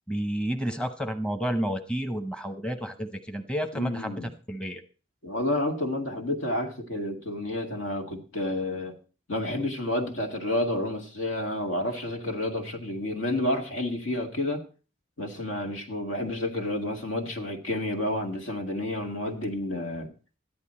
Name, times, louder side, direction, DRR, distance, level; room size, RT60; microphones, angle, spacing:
voice 1, 0.1-4.8, equal, 5° left, 7 dB, 0.9 m, -31 dB
voice 2, 3.7-4.3 5.2-8.9 9.3-14.6 15.2-20.1, left 1 dB, 75° left, 4 dB, 2.0 m, -30 dB
13.5 x 10.5 x 4.3 m, 0.36 s
head